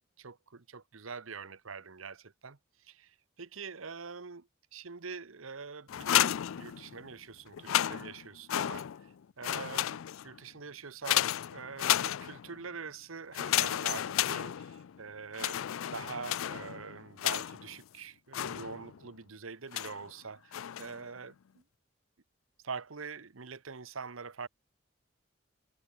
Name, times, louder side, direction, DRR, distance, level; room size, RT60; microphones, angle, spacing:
voice 1, 0.2-21.6 22.6-24.5, right 5 dB, 85° right, 1.1 m, -45 dB
sound 1, 5.9-7.1 7.5-9.1 9.4-10.4 11.0-12.6 13.3-15.0 15.3-17.7 18.3-19.1 19.7-20.1 20.5-21.0, left 12 dB, 85° left, 0.4 m, -32 dB
head